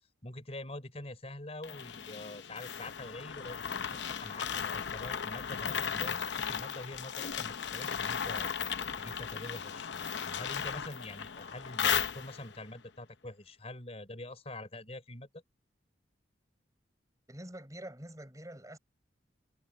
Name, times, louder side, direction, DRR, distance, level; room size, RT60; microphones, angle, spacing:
voice 1, 0.2-9.9 10.3-15.4, left 1 dB, 35° left, 4.1 m, -45 dB
sound 1, 1.6-12.6, left 7 dB, 75° left, 0.7 m, -36 dB
voice 2, 17.3-18.8, right 1 dB, 20° right, 6.4 m, -46 dB
head